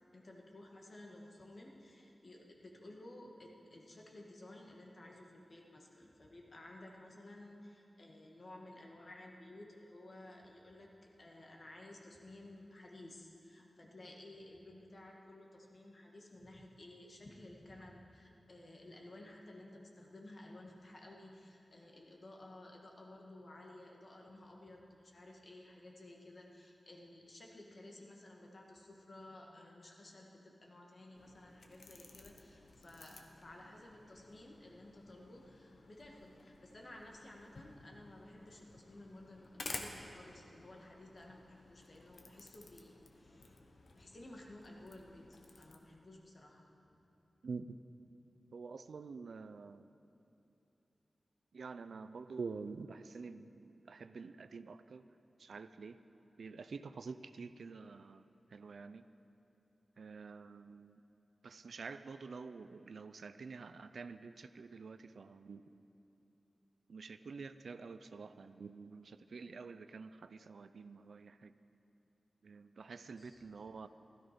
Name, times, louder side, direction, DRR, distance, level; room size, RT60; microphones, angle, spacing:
voice 1, 0.1-47.0 73.2-73.4, left 1 dB, 45° left, 0 dB, 1.8 m, -55 dB
sound 1, 31.1-45.8, left 3 dB, 70° left, 1.1 m, -53 dB
voice 2, 47.4-47.8 48.5-49.9 51.5-55.1 55.4-56.0 56.4-58.3 58.5-59.0 60.0-61.0 61.4-65.6 66.9-71.5 72.4-73.9, right 4 dB, 80° right, 12 dB, 0.4 m, -48 dB
16.0 x 13.0 x 5.2 m, 2.8 s
wide cardioid pair, 115°, 0 cm